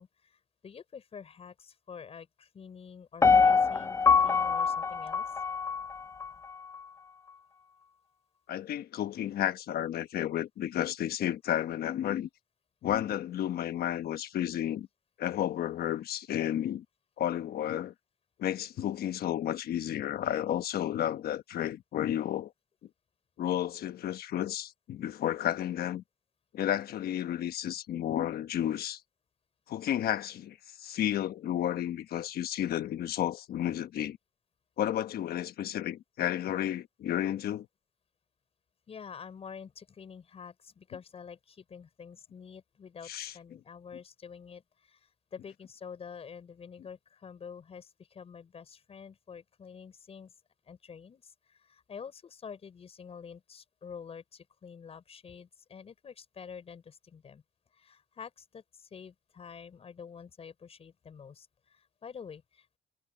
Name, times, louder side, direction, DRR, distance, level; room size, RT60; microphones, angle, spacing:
voice 1, 0.0-5.3 32.2-32.3 37.0-37.1 38.9-50.3 50.7-57.4 57.7-62.8, left 6 dB, 40° left, 5.9 m, -48 dB
Piano, 3.2-6.3 6.7-6.8, left 5 dB, 20° left, 0.4 m, -24 dB
voice 2, 8.5-12.3 12.8-14.9 15.2-16.8 17.2-17.9 18.4-22.5 23.4-26.0 26.5-29.0 29.7-34.2 34.8-37.7 43.1-43.3, left 11 dB, 70° left, 1.1 m, -32 dB
cardioid pair, 165°, 16 cm